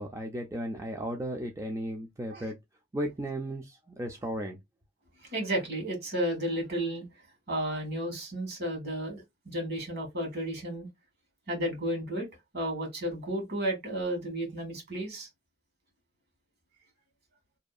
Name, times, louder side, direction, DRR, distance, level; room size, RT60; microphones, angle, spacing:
voice 1, 0.0-2.6 2.9-4.6, right 1 dB, 15° right, 0.4 m, -35 dB
voice 2, 5.3-7.0 7.5-10.9 11.5-12.3 12.5-15.3, right 1 dB, 55° right, 1.4 m, -32 dB
2.7 x 2.3 x 2.3 m
head